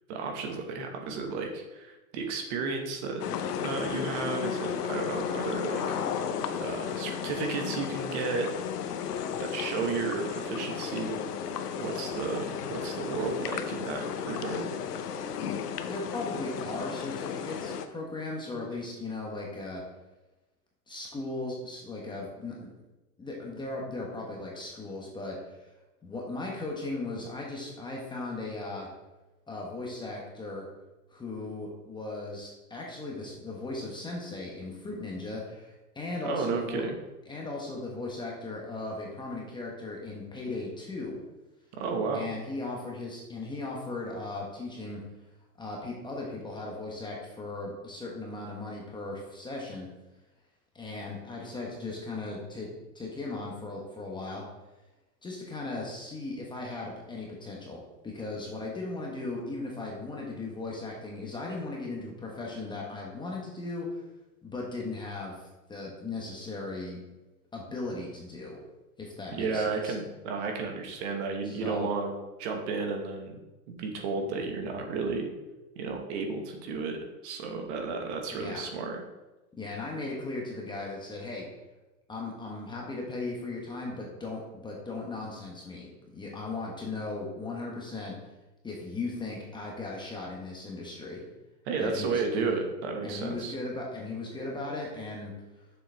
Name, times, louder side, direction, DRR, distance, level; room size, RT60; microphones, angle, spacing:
voice 1, 0.1-3.2 3.6-6.3 6.6-8.5 9.4-11.2 11.8-14.7 36.2-36.9 41.7-42.3 69.3-72.1 72.4-73.4 73.7-75.3 75.7-77.0 77.2-79.0 91.6-93.5, right 4 dB, 45° right, 3 dB, 1.5 m, -33 dB
sound 1, 3.2-17.9, left 8 dB, 85° left, 0.9 m, -34 dB
voice 2, 15.9-19.8 20.9-22.5 23.2-25.7 26.0-28.9 29.5-30.7 31.1-36.8 37.3-41.2 42.1-45.0 45.6-49.9 50.7-52.7 52.9-54.4 55.2-57.8 58.0-64.0 64.4-67.0 67.5-68.6 69.0-69.9 71.4-71.9 78.3-78.6 79.6-81.4 82.1-88.1 88.6-91.2 91.8-92.5 93.0-95.3, left 2 dB, 10° left, -2 dB, 1.0 m, -37 dB
7.2 x 6.9 x 3.3 m, 1.1 s
hypercardioid pair, 140°, 46 cm